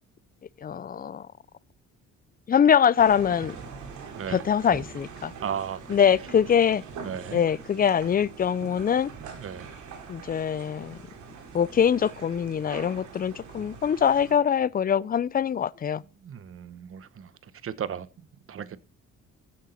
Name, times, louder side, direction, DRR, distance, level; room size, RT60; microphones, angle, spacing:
voice 1, 0.6-1.3 2.5-3.6 4.3-5.3 5.9-6.8 7.3-9.1 10.1-11.0 11.5-16.0, left 8 dB, 30° left, 0.4 m, -23 dB
sound 1, 3.0-14.3, right 5 dB, 75° right, 2.7 m, -43 dB
voice 2, 5.4-5.9 7.0-7.4 9.3-9.8 16.0-18.8, right 8 dB, 45° right, 1.0 m, -36 dB
15.0 x 6.6 x 4.3 m
cardioid pair, 90°, 30 cm